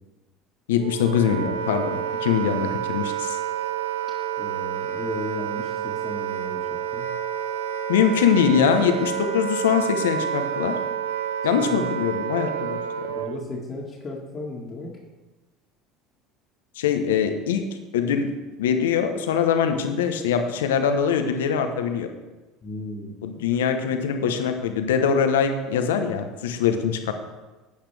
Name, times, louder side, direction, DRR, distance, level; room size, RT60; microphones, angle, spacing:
voice 1, 0.7-3.4 7.9-10.7 11.4-13.1 16.8-17.6 17.9-18.3 18.6-22.1 23.2-27.1, left 7 dB, 80° left, 7 dB, 1.0 m, -23 dB
Wind instrument woodwind instrument, 0.8-13.4, right 9 dB, 80° right, 0.6 m, -29 dB
voice 2, 4.4-7.1 11.7-11.9 13.2-14.9 22.6-23.2, left 2 dB, 35° left, -3 dB, 1.9 m, -35 dB
12.0 x 8.6 x 3.5 m, 1.2 s
hypercardioid pair, 75°, 0 cm